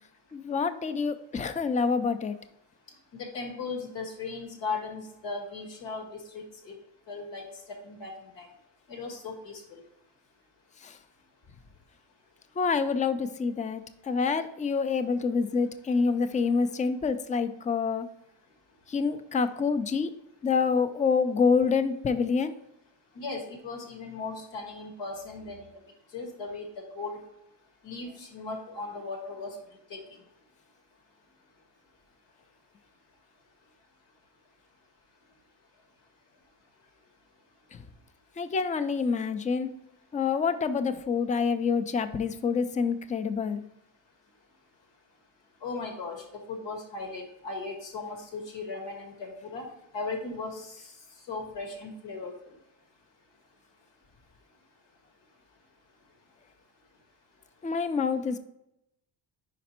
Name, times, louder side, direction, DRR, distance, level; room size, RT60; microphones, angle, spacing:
voice 1, 0.3-2.4 10.8-10.9 12.6-18.1 18.9-20.1 20.4-22.5 38.4-39.7 40.1-43.6 57.6-58.4, left 5 dB, 20° left, 11 dB, 0.3 m, -27 dB
voice 2, 3.1-6.1 6.3-6.8 7.1-7.4 7.8-8.5 8.9-9.8 23.1-25.7 26.1-27.2 27.8-29.6 29.9-30.0 45.6-46.2 46.5-49.7 49.9-50.9 51.3-52.5, left 3 dB, 85° left, 2 dB, 1.7 m, -37 dB
5.2 x 5.0 x 4.2 m, 0.82 s
cardioid pair, 130°, 42 cm